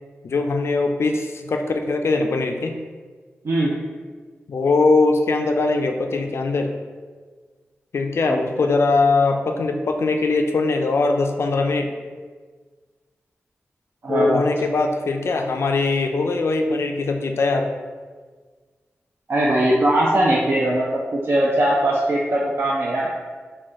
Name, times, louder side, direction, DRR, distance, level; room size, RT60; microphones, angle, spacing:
voice 1, 0.2-2.8 4.5-6.7 7.9-11.9 14.1-17.7, left 3 dB, 65° left, 4 dB, 0.4 m, -21 dB
voice 2, 8.3-8.7 14.0-14.4 19.3-23.1, right 1 dB, 60° right, -5 dB, 0.5 m, -20 dB
4.0 x 2.2 x 3.6 m, 1.5 s
wide cardioid pair, 85°, 5 cm